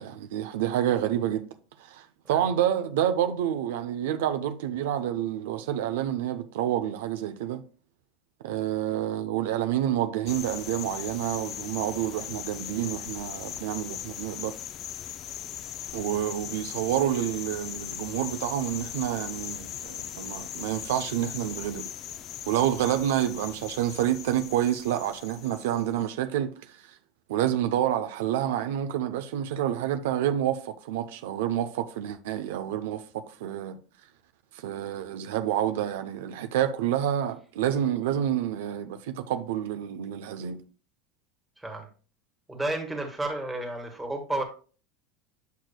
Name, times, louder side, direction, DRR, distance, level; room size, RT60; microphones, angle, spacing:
voice 1, 0.0-1.5 1.8-7.6 8.4-14.5 15.9-21.9 22.5-26.8 27.3-33.8 34.6-40.6, right 11 dB, 85° right, 0.5 m, -28 dB
sound 1, 10.3-26.0, left 10 dB, 35° left, 0.4 m, -39 dB
voice 2, 41.6-41.9 42.5-44.4, right 2 dB, 5° right, 1.5 m, -32 dB
8.3 x 6.2 x 2.2 m
supercardioid pair, 150°, 0 cm